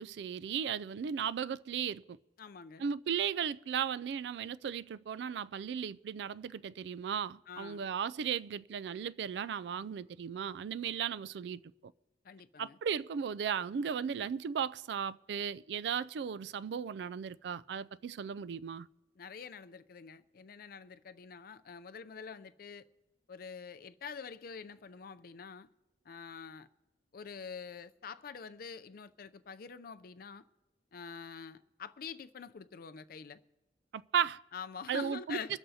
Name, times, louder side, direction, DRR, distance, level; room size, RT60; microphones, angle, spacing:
voice 1, 0.0-2.2 2.8-11.6 12.6-18.9 33.9-34.4 34.9-35.6, right 7 dB, 70° right, 0.3 m, -36 dB
voice 2, 2.4-2.9 7.5-7.9 12.2-12.8 19.2-22.8 23.3-25.7 26.1-26.7 27.1-30.4 30.9-33.4 34.5-35.6, left 6 dB, 55° left, 0.5 m, -46 dB
23.5 x 13.0 x 2.8 m
head